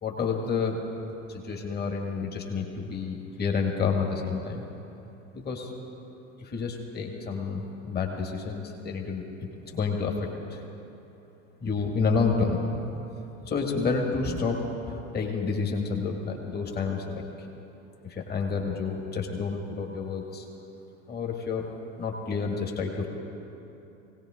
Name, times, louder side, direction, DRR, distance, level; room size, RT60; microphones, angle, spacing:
voice 1, 0.0-0.8 1.3-4.6 5.3-5.7 6.4-10.6 11.6-12.6 13.4-17.3 18.1-20.4 21.1-21.7 22.0-23.1, left 4 dB, 25° left, 1 dB, 2.1 m, -29 dB
19.5 x 17.5 x 3.8 m, 2.9 s
hypercardioid pair, 85°, 39 cm